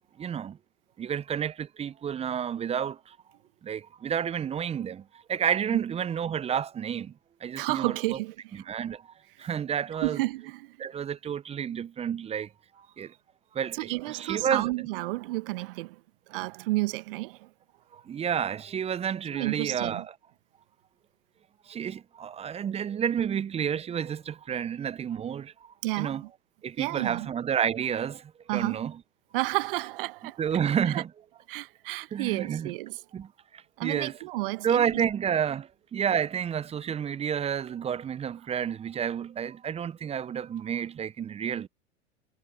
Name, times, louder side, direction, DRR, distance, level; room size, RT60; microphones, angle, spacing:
voice 1, 0.2-0.6 1.0-3.2 3.6-7.1 7.4-8.2 8.5-9.1 9.4-10.2 10.8-12.5 12.8-13.1 13.5-14.9 17.9-20.1 21.7-26.2 26.6-29.0 30.4-31.1 32.1-32.7 33.1-34.2 34.6-41.7, right 8 dB, 15° right, 1.0 m, -30 dB
voice 2, 7.6-8.6 10.0-10.8 13.7-16.0 16.3-17.5 19.3-20.0 25.8-26.3 26.8-27.3 28.5-28.8 29.3-30.4 30.9-31.0 31.5-33.0 33.8-35.0, right 20 dB, 50° right, 1.5 m, -31 dB
figure-of-eight pair, 95°, 36 cm